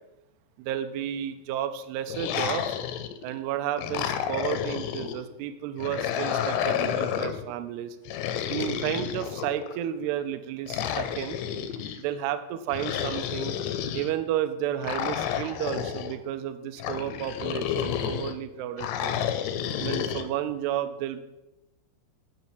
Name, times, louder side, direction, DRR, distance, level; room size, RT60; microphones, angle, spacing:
voice 1, 0.6-2.7 3.2-8.0 8.5-11.4 12.0-13.5 13.9-19.2 19.8-21.2, right 11 dB, 85° right, 9 dB, 2.5 m, -32 dB
sound 1, 2.1-3.3 3.8-5.2 5.8-7.4 8.1-9.8 10.7-12.0 12.7-14.1 14.8-16.1 16.8-18.3 18.8-20.3, left 9 dB, 90° left, 3.0 m, -30 dB
9.3 x 5.9 x 6.8 m, 0.94 s
omnidirectional pair, 5.1 m